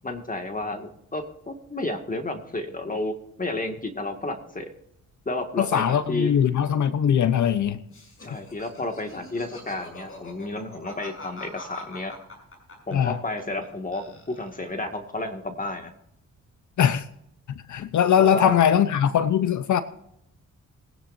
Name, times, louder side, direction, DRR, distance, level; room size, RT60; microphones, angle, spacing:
voice 1, 0.0-4.7 5.3-6.4 8.2-12.1 12.9-15.9 18.2-18.5, left 2 dB, 25° left, 2.1 m, -31 dB
voice 2, 5.6-7.8 12.9-13.2 16.8-17.0 17.7-19.8, left 9 dB, 65° left, 0.9 m, -21 dB
Laughter, 7.9-13.7 13.9-14.7, left 2 dB, 45° left, 6.2 m, -43 dB
22.5 x 10.5 x 2.7 m
cardioid pair, 80°, 31 cm